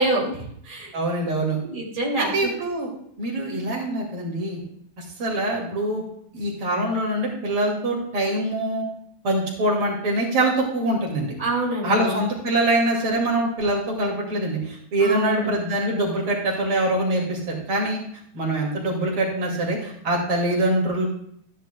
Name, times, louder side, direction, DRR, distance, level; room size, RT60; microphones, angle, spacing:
voice 1, 0.0-0.9 1.6-2.5 11.4-12.2 15.0-15.5, right 2 dB, 20° right, -3 dB, 2.5 m, -26 dB
voice 2, 0.9-1.6 2.2-2.9 3.2-4.6 5.0-6.0 6.3-8.8 9.2-11.3 11.8-18.0 18.3-21.1, right 1 dB, 75° right, -2 dB, 3.2 m, -24 dB
13.5 x 10.0 x 2.2 m, 0.69 s
omnidirectional pair, 2.4 m